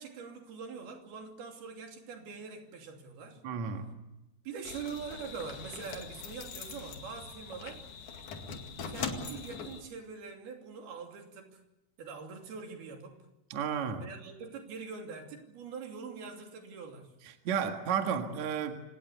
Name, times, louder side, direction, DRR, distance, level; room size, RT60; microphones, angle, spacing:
voice 1, 0.0-3.4 4.4-7.8 8.9-11.6 12.0-13.2 14.0-17.1, right 5 dB, 75° right, 4.8 m, -43 dB
voice 2, 3.4-3.9 13.5-14.1 17.5-18.8, right 7 dB, 55° right, 2.7 m, -32 dB
sound 1, 4.6-9.8, left 5 dB, 55° left, 3.4 m, -42 dB
27.0 x 18.0 x 8.3 m
omnidirectional pair, 4.5 m